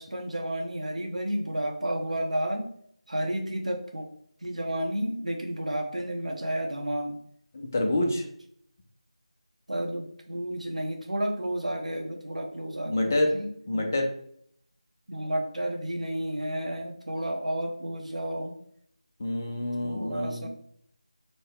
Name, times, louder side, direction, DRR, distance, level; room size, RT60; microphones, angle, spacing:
voice 1, 0.0-2.7 3.1-4.1 4.4-7.2 9.7-14.0 15.1-18.5 19.8-20.5, right 1 dB, 90° right, 3 dB, 0.9 m, -31 dB
voice 2, 7.7-8.2 12.9-13.3 13.7-14.1 19.2-20.5, left 1 dB, 25° left, 3 dB, 0.4 m, -27 dB
4.1 x 2.1 x 3.5 m, 0.66 s
figure-of-eight pair, 170°, 4 cm